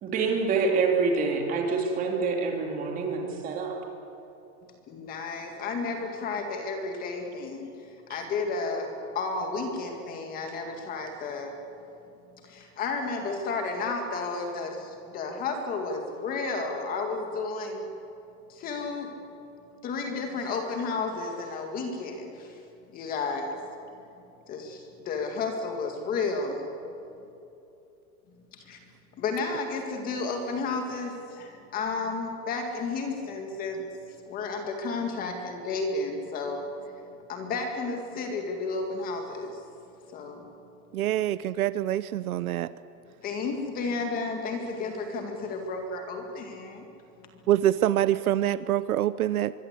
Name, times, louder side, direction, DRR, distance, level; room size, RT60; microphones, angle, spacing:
voice 1, 0.0-3.8 8.1-8.2, right 4 dB, 20° right, 2 dB, 2.8 m, -26 dB
voice 2, 4.9-7.7 8.1-11.6 12.4-17.8 18.5-19.1 19.8-22.6 22.9-23.6 24.5-26.7 28.5-28.8 29.2-33.9 34.3-36.6 37.3-39.6 40.1-40.4 43.2-46.9 47.2-47.3, left 4 dB, 20° left, 4 dB, 2.1 m, -32 dB
voice 3, 40.9-42.7 47.5-49.5, right 12 dB, 70° right, 16 dB, 0.8 m, -25 dB
24.0 x 23.5 x 8.3 m, 2.9 s
supercardioid pair, 175°, 46 cm